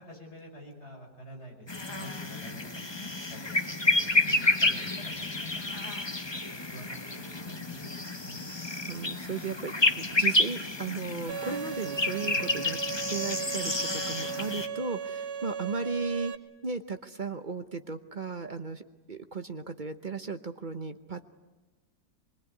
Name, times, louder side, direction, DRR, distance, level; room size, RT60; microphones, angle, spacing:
voice 1, 0.0-5.6 6.5-8.4 12.3-12.4, equal, 40° left, 1 dB, 5.7 m, -48 dB
sound 1, 1.7-14.7, left 2 dB, 20° left, 1.1 m, -30 dB
voice 2, 8.5-12.8 13.1-16.3 16.6-21.2, right 4 dB, 35° right, 8 dB, 0.9 m, -36 dB
Bowed string instrument, 11.3-16.3, right 7 dB, 70° right, 1.6 m, -37 dB
25.0 x 22.0 x 9.5 m, 1.2 s
omnidirectional pair, 1.7 m